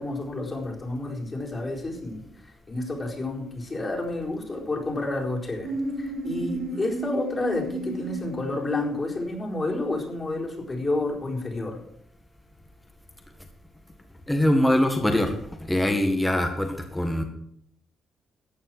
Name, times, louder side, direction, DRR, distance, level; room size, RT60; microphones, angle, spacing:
voice 1, 0.0-11.8, left 2 dB, 30° left, -1 dB, 4.4 m, -30 dB
sound 1, 5.6-9.0, right 2 dB, 85° right, 2.4 m, -33 dB
voice 2, 14.3-15.4 15.7-17.2, left 1 dB, 10° left, 4 dB, 1.8 m, -22 dB
14.5 x 9.1 x 6.1 m, 0.68 s
cardioid pair, 90°, 0 cm